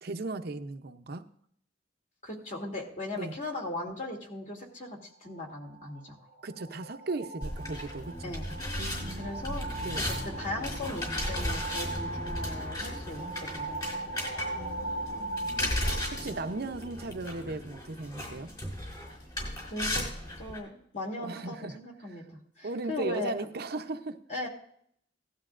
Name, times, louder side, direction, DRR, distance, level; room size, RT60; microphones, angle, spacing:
voice 1, 0.0-1.2 3.1-3.3 6.4-8.3 8.8-10.0 14.5-15.6 16.1-18.5 21.2-21.8 22.1-22.2 22.6-24.2, right 3 dB, 60° right, 8 dB, 0.7 m, -37 dB
voice 2, 2.2-6.2 8.2-8.6 9.2-9.8 10.1-13.8 19.6-20.0 20.4-22.2 22.6-23.3 24.3-24.5, left 2 dB, 45° left, 1 dB, 2.6 m, -38 dB
sound 1, 5.2-16.9, right 2 dB, 75° left, 5.1 m, -40 dB
sound 2, 7.4-20.6, left 1 dB, 25° left, 4.4 m, -36 dB
17.5 x 12.0 x 2.5 m, 0.66 s
head